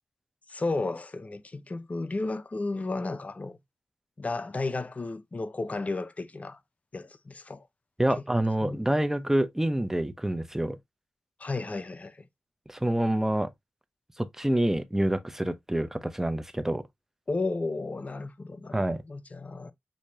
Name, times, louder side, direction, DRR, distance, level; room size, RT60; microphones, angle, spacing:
voice 1, 0.5-3.6 4.2-6.6 6.9-7.7 8.2-8.3 8.6-8.8 11.4-12.3 17.3-19.7, left 3 dB, 40° left, 0.7 m, -33 dB
voice 2, 8.0-10.8 12.7-13.5 14.2-16.8 18.7-19.0, right 1 dB, 10° right, 0.8 m, -27 dB
6.5 x 2.9 x 2.7 m
cardioid pair, 50°, 4 cm